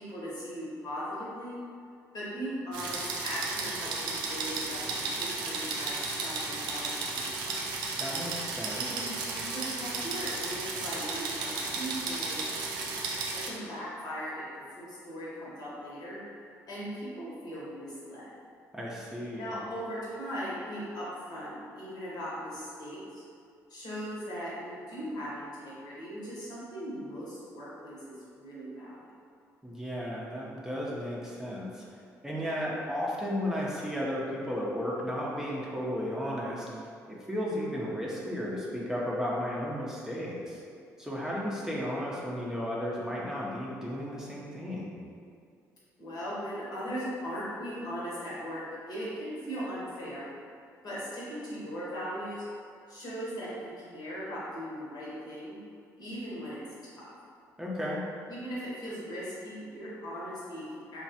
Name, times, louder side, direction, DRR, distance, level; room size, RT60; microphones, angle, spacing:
voice 1, 0.0-1.6 2.1-7.7 8.7-12.5 13.3-14.4 14.7-16.2 16.7-18.3 19.4-23.2 23.7-29.0 46.0-50.3 50.8-52.4 52.9-55.6 56.0-56.6 57.0-57.1 58.3-61.0, equal, 60° left, -8 dB, 1.1 m, -39 dB
sound 1, 2.7-13.5, right 3 dB, 80° right, 0.4 m, -34 dB
voice 2, 8.0-8.8 18.7-19.5 29.6-31.8 32.2-40.6 41.0-45.0 57.6-58.0, equal, 5° right, -6 dB, 0.6 m, -34 dB
3.1 x 2.3 x 2.7 m, 2.3 s
supercardioid pair, 55°, 8 cm